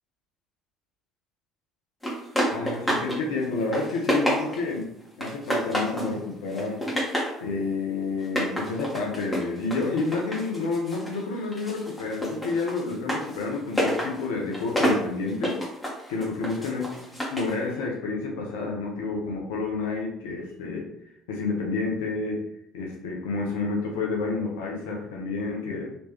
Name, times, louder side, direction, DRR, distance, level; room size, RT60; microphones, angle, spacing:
sound 1, 2.0-3.2 3.5-4.8 5.2-6.1 6.5-7.4 8.2-11.2 11.5-17.5, equal, 10° left, 1.4 m, -29 dB
voice 1, 2.5-4.9 5.2-6.8 7.4-15.6 16.1-16.8 17.3-20.9 21.3-22.5 22.7-25.9, left 3 dB, 75° left, -1 dB, 0.7 m, -29 dB
3.2 x 3.0 x 2.8 m, 0.76 s
hypercardioid pair, 55°, 0 cm